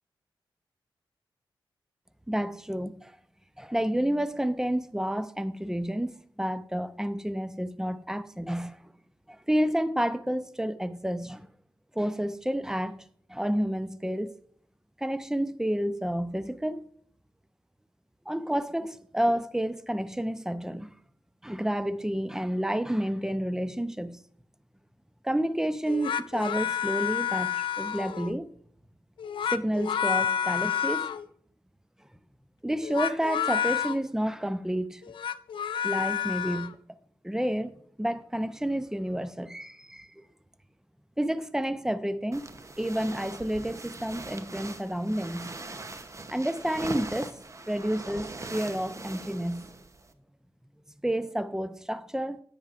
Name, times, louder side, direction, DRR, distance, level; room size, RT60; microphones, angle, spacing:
voice 1, 2.3-3.1 3.6-8.8 9.3-11.5 12.0-13.0 13.3-14.3 15.0-16.9 18.3-20.9 21.4-24.2 25.2-28.5 29.5-31.1 32.6-35.0 35.8-36.8 37.2-40.1 41.2-42.4 42.8-45.5 46.3-47.3 47.7-49.7 51.0-52.4, equal, 5° right, 0.6 m, -30 dB
sound 1, 25.9-28.3 29.2-31.2 32.8-34.0 35.0-36.7, left 9 dB, 70° left, 0.3 m, -29 dB
sound 2, 42.3-50.1, right 2 dB, 35° right, 0.8 m, -41 dB
10.0 x 8.1 x 2.5 m
cardioid pair, 50°, 9 cm